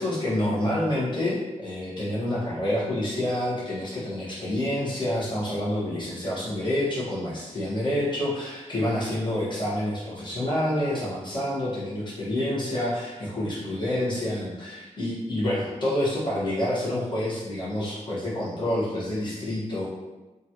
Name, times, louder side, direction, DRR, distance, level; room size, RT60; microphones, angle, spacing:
voice 1, 0.0-19.9, left 1 dB, 35° left, -9 dB, 1.2 m, -28 dB
3.0 x 2.5 x 2.8 m, 1.1 s
wide cardioid pair, 115°, 13 cm